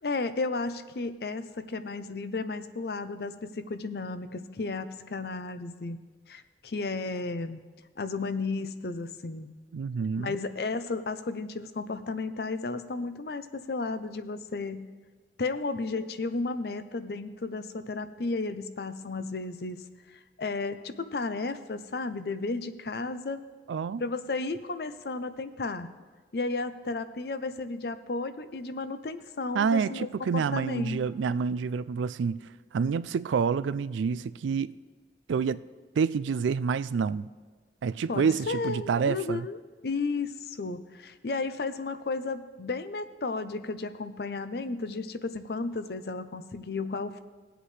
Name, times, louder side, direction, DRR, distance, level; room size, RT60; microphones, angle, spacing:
voice 1, 0.0-6.0 6.3-7.6 8.0-9.5 10.2-14.9 15.4-19.8 20.1-23.4 24.0-25.9 26.3-30.1 30.3-31.0 38.1-47.2, left 3 dB, 60° left, 0.5 m, -33 dB
voice 2, 9.7-10.4 23.7-24.0 29.5-32.4 32.7-34.7 35.3-35.6 36.0-37.3 37.8-39.5, right 6 dB, 90° right, 0.3 m, -28 dB
19.0 x 8.0 x 3.3 m
head